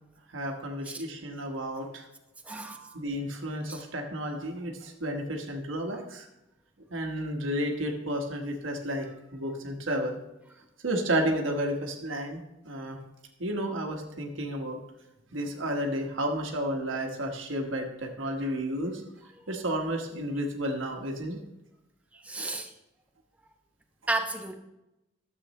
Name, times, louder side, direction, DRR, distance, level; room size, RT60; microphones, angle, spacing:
voice 1, 0.3-2.1 2.9-6.3 6.9-9.1 9.3-10.2 10.8-13.0 13.4-14.8 15.3-19.0 19.5-21.4, right 1 dB, 75° right, 3 dB, 1.3 m, -32 dB
voice 2, 2.5-3.0 3.7-3.8 22.2-22.7 24.1-24.6, right 2 dB, 5° right, 4 dB, 0.8 m, -33 dB
13.0 x 7.6 x 3.2 m, 0.93 s
head